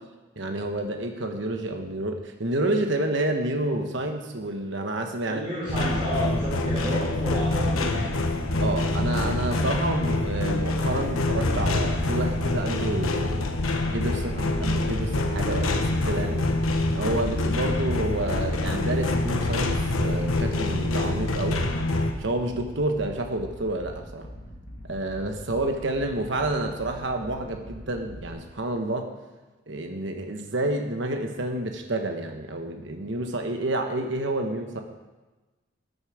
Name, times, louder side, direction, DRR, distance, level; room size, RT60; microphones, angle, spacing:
voice 1, 0.4-5.4 8.6-13.5 13.9-16.5 16.9-21.6 22.2-24.3 24.9-29.1 29.7-34.8, right 1 dB, 60° right, 4 dB, 1.2 m, -29 dB
voice 2, 5.2-8.1, equal, 25° right, -8 dB, 3.3 m, -31 dB
sound 1, 5.7-22.1, left 2 dB, 90° left, 1.2 m, -25 dB
sound 2, 22.5-28.3, equal, 65° left, 2.7 m, -43 dB
14.0 x 9.6 x 4.9 m, 1.2 s
head